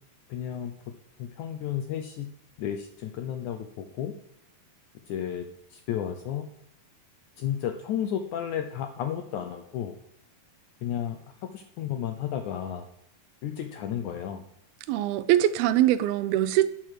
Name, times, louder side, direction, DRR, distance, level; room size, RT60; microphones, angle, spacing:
voice 1, 0.3-0.7 1.2-2.3 2.6-4.1 5.1-5.5 5.7-6.5 7.4-10.0 10.8-11.2 11.5-12.8 13.4-14.4, left 9 dB, 80° left, 1.8 m, -32 dB
voice 2, 14.9-16.7, right 13 dB, 90° right, 2.6 m, -22 dB
9.0 x 7.7 x 6.5 m
omnidirectional pair, 4.3 m